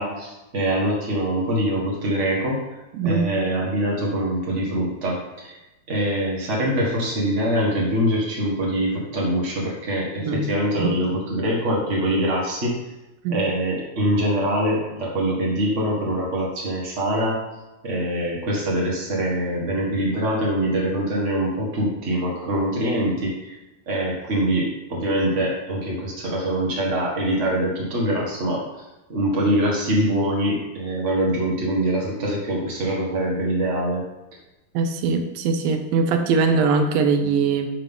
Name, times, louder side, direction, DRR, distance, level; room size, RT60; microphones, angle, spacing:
voice 1, 0.0-2.6 3.0-5.6 5.9-12.8 13.3-17.4 17.8-23.5 23.9-28.6 29.1-34.1, right 1 dB, 60° right, -3 dB, 0.7 m, -24 dB
voice 2, 3.0-3.3 10.2-10.5 10.8-10.9 13.2-13.4 34.7-37.7, right 4 dB, 80° right, 7 dB, 2.5 m, -21 dB
11.0 x 3.7 x 5.5 m, 1.0 s
omnidirectional pair, 4.1 m